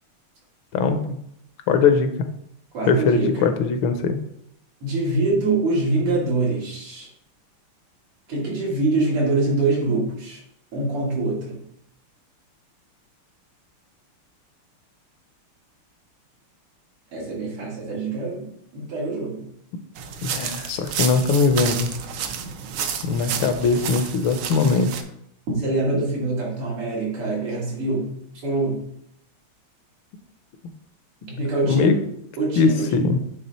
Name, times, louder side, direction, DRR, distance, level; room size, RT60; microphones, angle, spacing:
voice 1, 1.7-2.1 2.9-4.2 20.2-22.0 23.0-24.9 31.6-32.0 32.6-33.2, left 5 dB, 75° left, 8 dB, 1.3 m, -20 dB
voice 2, 2.7-3.5 4.8-7.1 8.3-10.4 10.7-11.6 17.1-19.4 25.5-28.1 28.4-28.8 31.2-32.0 32.4-33.0, right 2 dB, 85° right, -4 dB, 3.0 m, -24 dB
sound 1, 20.0-25.0, right 7 dB, 70° right, 1.1 m, -30 dB
8.4 x 3.5 x 4.1 m, 0.73 s
omnidirectional pair, 2.4 m